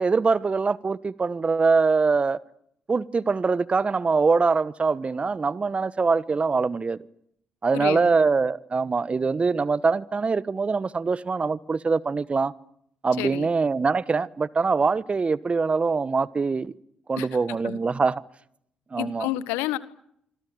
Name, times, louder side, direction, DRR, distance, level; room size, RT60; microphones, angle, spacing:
voice 1, 0.0-2.4 2.9-7.0 7.6-12.5 13.0-16.7 17.1-18.2 18.9-19.3, right 4 dB, 35° right, 1.2 m, -23 dB
voice 2, 7.7-8.1 13.2-13.5 17.2-17.3 17.6-17.8 19.0-19.8, left 16 dB, 75° left, 1.3 m, -29 dB
26.5 x 26.0 x 7.6 m
hypercardioid pair, 45°, 3 cm